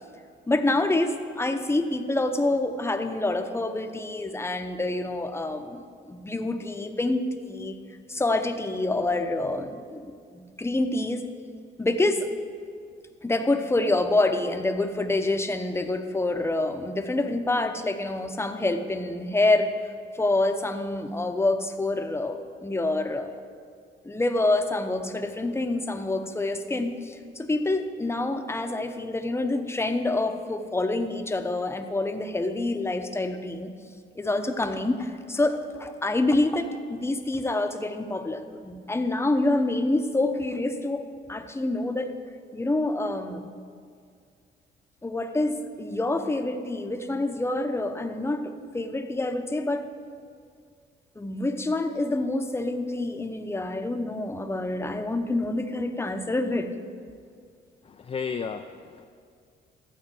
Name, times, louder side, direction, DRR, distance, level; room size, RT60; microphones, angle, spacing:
voice 1, 0.5-7.8 8.1-11.3 11.8-12.3 13.2-19.7 20.1-23.3 24.0-33.7 34.2-41.0 41.3-42.1 42.5-43.5 45.0-49.8 51.2-56.7, left 2 dB, 15° left, 7 dB, 0.8 m, -27 dB
voice 2, 57.9-59.0, left 6 dB, 30° left, 6 dB, 0.4 m, -33 dB
12.5 x 8.5 x 4.5 m, 2.2 s
cardioid pair, 90°, 20 cm